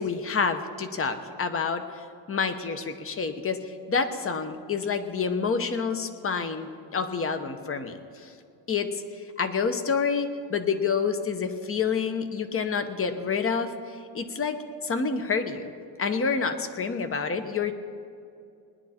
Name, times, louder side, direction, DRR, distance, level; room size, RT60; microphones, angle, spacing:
voice 1, 0.0-8.3 8.7-14.6 14.8-15.7 16.0-17.7, left 5 dB, 30° left, 9 dB, 1.0 m, -28 dB
20.0 x 10.5 x 4.3 m, 2.5 s
cardioid pair, 130°, 48 cm